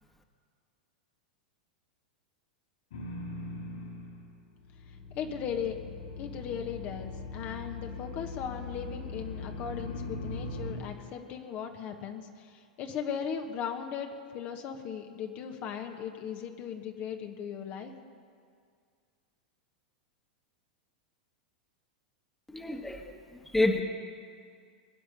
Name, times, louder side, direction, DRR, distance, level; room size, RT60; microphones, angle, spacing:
sound 1, 2.9-4.3 4.6-10.7, left 2 dB, 70° left, 4.7 m, -40 dB
voice 1, 5.1-5.8 6.2-12.5 12.8-17.9, left 7 dB, 45° left, 4 dB, 1.4 m, -37 dB
voice 2, 22.5-23.0 23.5-23.8, left 2 dB, 5° left, 3 dB, 1.6 m, -27 dB
22.0 x 9.7 x 6.8 m, 2.1 s
figure-of-eight pair, 95°, 4 cm